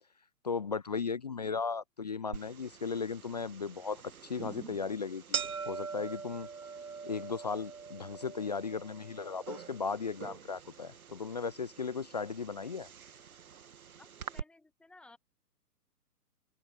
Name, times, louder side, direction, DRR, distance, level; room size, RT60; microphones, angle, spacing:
voice 1, 0.4-6.5 7.0-12.9, left 5 dB, 25° left, 0.5 m, -36 dB
sound 1, 2.3-14.4, right 6 dB, 60° right, 1.9 m, -44 dB
voice 2, 14.0-15.2, left 2 dB, ahead, 1.4 m, -57 dB
open air
figure-of-eight pair, 135°, 48 cm